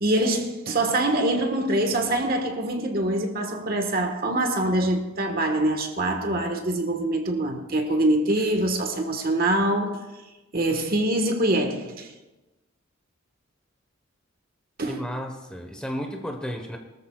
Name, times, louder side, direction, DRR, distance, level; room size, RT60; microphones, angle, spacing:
voice 1, 0.0-10.0 10.5-12.1 14.8-15.0, right 1 dB, 45° right, 1.4 m, -24 dB
voice 2, 14.9-16.8, equal, 5° left, 1.1 m, -33 dB
22.5 x 13.5 x 2.4 m
head